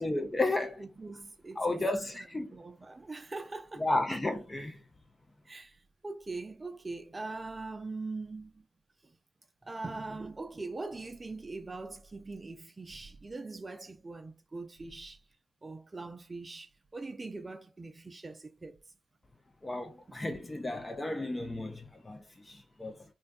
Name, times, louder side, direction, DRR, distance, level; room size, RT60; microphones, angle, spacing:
voice 1, 0.0-0.8 1.6-2.5 3.8-4.8 19.6-23.0, left 2 dB, 25° left, 0.4 m, -33 dB
voice 2, 0.8-1.9 2.5-3.8 5.5-8.6 9.0-9.1 9.6-15.2 15.6-18.8 19.8-20.2, right 3 dB, 30° right, 0.4 m, -42 dB
2.5 x 2.2 x 2.2 m
hypercardioid pair, 40°, 0 cm